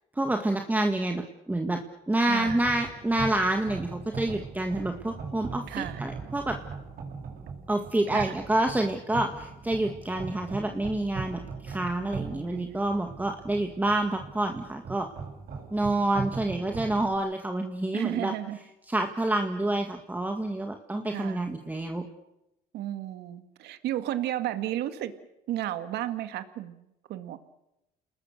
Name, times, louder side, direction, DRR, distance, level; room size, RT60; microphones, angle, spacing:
voice 1, 0.2-6.6 7.7-15.1 15.7-18.3 18.9-22.0, right 1 dB, 10° right, 4 dB, 1.9 m, -28 dB
voice 2, 2.2-2.7 5.7-6.0 8.1-8.3 12.1-12.7 17.9-18.6 21.1-21.4 22.7-25.1 25.5-26.8 27.1-27.4, right 12 dB, 80° right, 10 dB, 2.1 m, -33 dB
sound 1, 2.4-17.1, right 5 dB, 60° right, 6.9 m, -40 dB
29.0 x 20.0 x 6.6 m, 0.87 s
cardioid pair, 110°, 17 cm